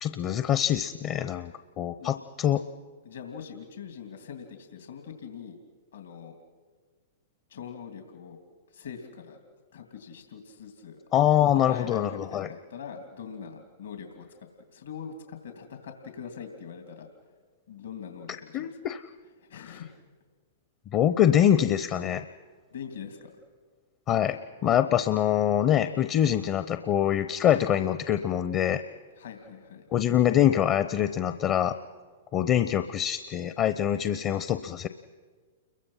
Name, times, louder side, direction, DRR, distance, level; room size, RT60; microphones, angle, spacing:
voice 1, 0.0-2.6 11.1-12.5 18.5-19.0 20.9-22.2 24.1-28.8 29.9-31.8 32.3-34.9, left 10 dB, 35° left, 10 dB, 0.8 m, -24 dB
voice 2, 3.0-5.6 5.9-6.4 7.5-8.4 8.7-9.4 9.7-11.0 11.5-14.3 14.7-17.1 17.7-18.8 19.4-19.9 22.7-23.3 29.2-29.9, left 7 dB, 75° left, 4 dB, 2.9 m, -42 dB
29.5 x 22.5 x 5.7 m, 1.5 s
hypercardioid pair, 110°, 0 cm